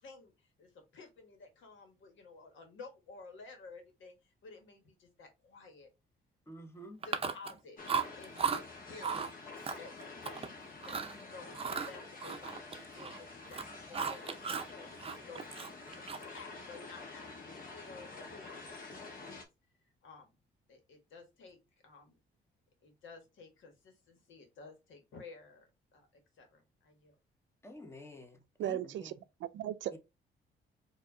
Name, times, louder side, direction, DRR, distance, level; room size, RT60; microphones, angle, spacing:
voice 1, 0.0-5.9 7.0-7.8 8.2-9.2 9.8-9.9 10.2-10.4 10.8-15.7 16.0-19.4 20.0-20.4 20.7-21.6 21.8-22.2 22.8-27.1, left 4 dB, 75° left, 1.6 m, -53 dB
voice 2, 6.5-7.0 27.6-29.1 29.9-30.0, equal, 15° left, 1.0 m, -50 dB
Chewing mastication, 7.0-7.6 7.9-8.6 9.0-9.3 9.6-10.5 10.8-11.1 11.5-13.2 13.4-14.7 15.0-16.4, right 6 dB, 30° right, 0.6 m, -36 dB
sound 1, 7.8-19.5, left 3 dB, 45° left, 1.3 m, -48 dB
voice 3, 28.6-29.1 29.4-30.0, right 11 dB, 70° right, 0.5 m, -36 dB
4.5 x 2.8 x 2.7 m
cardioid pair, 90°, 20 cm